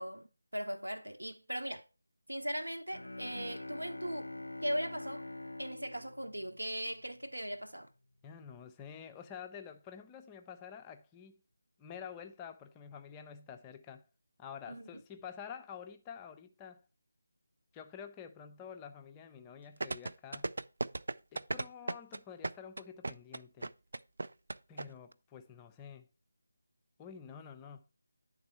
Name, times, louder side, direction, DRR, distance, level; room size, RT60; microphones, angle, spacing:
voice 1, 0.0-1.8 2.3-4.3 4.6-5.2 5.6-7.9 14.7-15.0, equal, 80° right, 1.0 m, -39 dB
Bowed string instrument, 2.9-7.2, left 2 dB, 80° left, 0.4 m, -45 dB
voice 2, 8.2-11.4 11.8-14.1 14.4-16.8 17.7-20.5 21.3-23.7 24.7-26.1 27.0-27.8, left 7 dB, 15° left, 0.4 m, -49 dB
sound 1, 19.8-24.9 25.1-25.2, right 2 dB, 55° right, 0.3 m, -36 dB
9.5 x 3.7 x 4.3 m
figure-of-eight pair, 160°, 0 cm